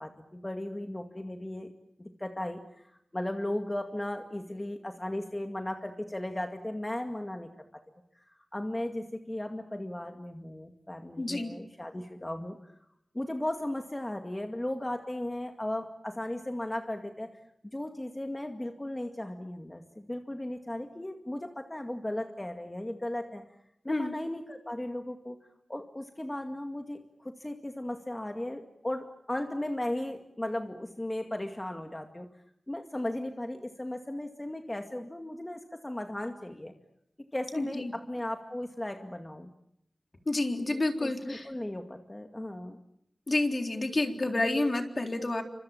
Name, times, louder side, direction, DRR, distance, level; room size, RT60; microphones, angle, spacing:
voice 1, 0.0-1.7 2.0-2.6 3.1-7.5 8.4-12.7 13.1-17.3 17.7-23.4 23.8-25.4 25.7-32.3 32.7-36.7 37.3-39.5 41.0-42.8, left 1 dB, 20° left, 4 dB, 2.2 m, -36 dB
voice 2, 11.2-11.5 23.9-24.1 37.6-37.9 40.3-41.5 43.3-45.4, left 2 dB, 45° left, 4 dB, 3.8 m, -29 dB
29.5 x 26.0 x 7.2 m, 0.76 s
wide cardioid pair, 70°, 0 cm